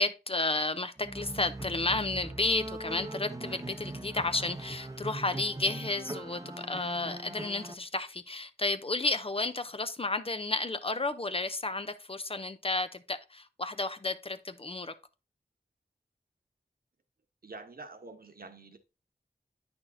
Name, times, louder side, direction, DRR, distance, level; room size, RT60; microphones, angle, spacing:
voice 1, 0.0-14.9, left 2 dB, 35° left, 0.5 m, -32 dB
sound 1, 1.0-7.7, right 2 dB, 20° right, 0.7 m, -41 dB
voice 2, 17.4-18.8, right 3 dB, 60° right, 1.0 m, -47 dB
9.0 x 6.0 x 2.6 m
wide cardioid pair, 70°, 17 cm